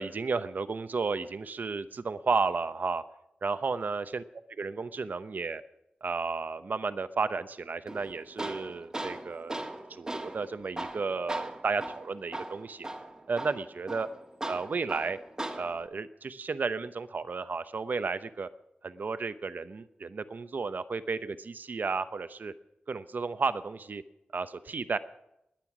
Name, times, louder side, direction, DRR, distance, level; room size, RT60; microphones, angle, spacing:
voice 1, 0.0-3.0 3.4-4.2 4.6-5.6 6.0-9.6 9.9-12.9 13.3-14.1 14.5-15.2 15.5-18.5 18.8-22.5 22.9-24.0 24.3-25.0, right 4 dB, 60° right, 12 dB, 0.8 m, -33 dB
Tools, 7.9-15.9, right 1 dB, 20° right, 1.4 m, -39 dB
20.5 x 9.2 x 6.1 m, 0.85 s
wide cardioid pair, 95°, 3 cm